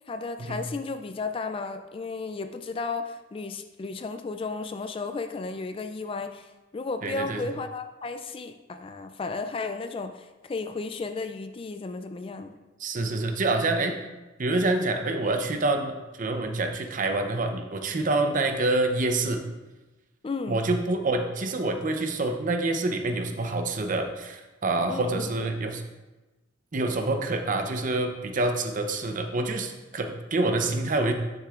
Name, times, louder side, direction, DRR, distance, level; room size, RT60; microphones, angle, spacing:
voice 1, 0.1-12.6 20.2-20.6 24.9-25.3, left 3 dB, 30° left, 8 dB, 0.3 m, -34 dB
voice 2, 7.0-7.4 12.8-14.0 14.4-19.4 20.5-25.8 26.7-31.1, right 2 dB, 40° right, 5 dB, 0.7 m, -27 dB
9.8 x 6.6 x 2.4 m, 1.1 s
head